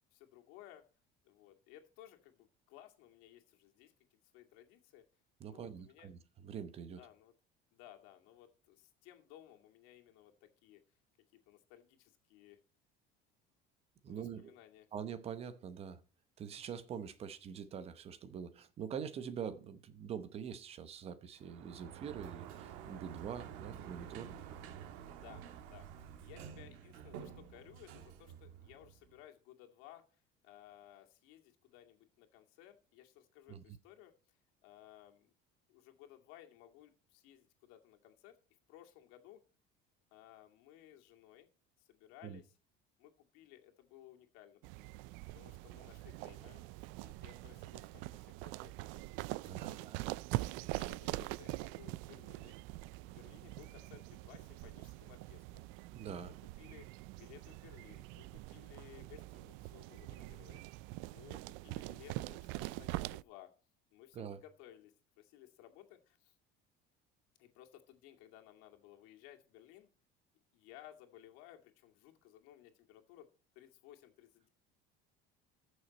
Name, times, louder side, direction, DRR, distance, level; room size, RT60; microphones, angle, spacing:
voice 1, 0.1-0.8 1.2-5.0 5.5-6.1 6.8-7.3 7.7-10.8 11.3-12.6 14.1-14.9 25.1-35.3 35.7-38.4 38.7-39.4 40.1-41.5 41.8-42.6 43.0-45.1 45.3-49.9 50.6-52.5 53.0-55.7 56.2-56.9 57.2-63.5 63.9-66.4 67.4-69.9 70.5-73.3 73.5-74.5, left 12 dB, 90° left, 2.3 m, -59 dB
voice 2, 5.4-7.0 14.0-14.5 14.9-16.0 16.4-24.4 33.5-33.6 42.2-42.4 49.5-50.0 55.9-56.3 64.1-64.4, right 7 dB, 30° right, 0.9 m, -44 dB
Sliding door, 21.4-29.2, right 8 dB, 85° right, 1.5 m, -50 dB
sound 1, 44.6-63.2, right 20 dB, 70° right, 0.4 m, -44 dB
14.5 x 6.4 x 4.2 m
cardioid pair, 180°, 20 cm